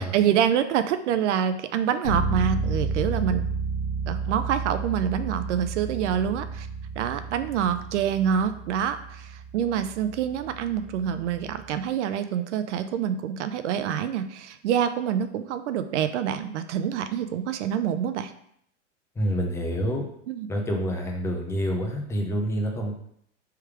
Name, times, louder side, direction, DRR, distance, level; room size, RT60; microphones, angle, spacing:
voice 1, 0.0-3.4 4.1-6.7 7.0-18.3 20.3-20.5, right 9 dB, 75° right, 10 dB, 0.6 m, -26 dB
Bass guitar, 2.0-11.8, right 3 dB, 80° left, 1.2 m, -32 dB
voice 2, 19.2-20.0 20.5-22.9, equal, 5° left, 1 dB, 0.6 m, -27 dB
3.5 x 3.1 x 4.7 m, 0.69 s
hypercardioid pair, 130°, 36 cm